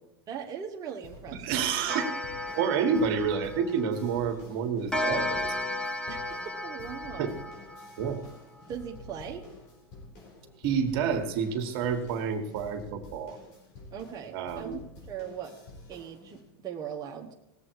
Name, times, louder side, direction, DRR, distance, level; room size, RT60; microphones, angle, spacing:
voice 1, 0.3-1.7 6.1-7.3 8.7-9.5 13.9-14.8 15.1-15.5 15.9-17.3, right 8 dB, 30° right, 0 dB, 1.2 m, -39 dB
sound 1, 1.0-16.4, left 2 dB, 55° left, 4.9 m, -49 dB
voice 2, 1.4-2.1 2.5-5.6 7.2-7.3 8.0-8.2 10.6-13.4 14.3-14.8, right 6 dB, 60° right, 6 dB, 1.8 m, -29 dB
Clock, 1.9-4.1 4.9-8.3, left 1 dB, 5° left, 1.3 m, -34 dB
19.0 x 7.7 x 4.8 m, 0.88 s
supercardioid pair, 125°, 13 cm